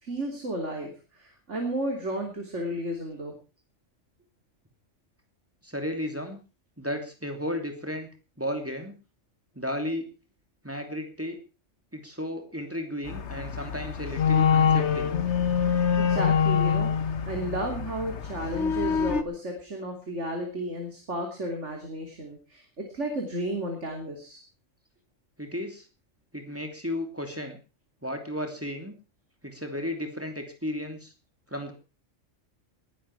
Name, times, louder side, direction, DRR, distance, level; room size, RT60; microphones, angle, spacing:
voice 1, 0.0-3.3 16.0-24.4, right 1 dB, 65° right, 3 dB, 3.5 m, -33 dB
voice 2, 5.6-6.4 6.8-8.1 8.4-8.9 9.5-10.1 10.6-11.4 11.9-15.1 25.4-25.9 26.3-27.6 28.0-28.9 29.4-31.1 31.5-31.7, equal, 10° right, 4 dB, 2.9 m, -34 dB
sound 1, 13.1-19.2, left 7 dB, 60° left, 1.4 m, -25 dB
20.5 x 11.5 x 4.8 m, 0.34 s
omnidirectional pair, 1.3 m